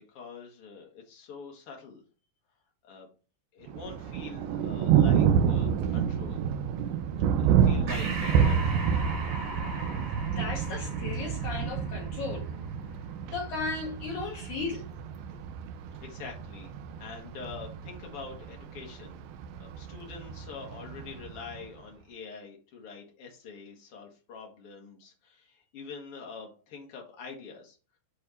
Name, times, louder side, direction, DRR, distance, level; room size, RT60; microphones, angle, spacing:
voice 1, 0.0-2.0 2.8-3.1 3.5-6.4 7.4-8.7 16.0-16.7 17.0-19.3 19.6-27.8, left 5 dB, 70° left, 1.3 m, -45 dB
Thunder, 3.7-21.7, right 8 dB, 80° right, 2.2 m, -28 dB
Breathing, 7.9-12.8, right 2 dB, 50° right, 1.9 m, -39 dB
voice 2, 10.4-12.5 13.3-14.9, left 4 dB, 85° left, 1.6 m, -35 dB
8.6 x 3.4 x 4.2 m
omnidirectional pair, 4.9 m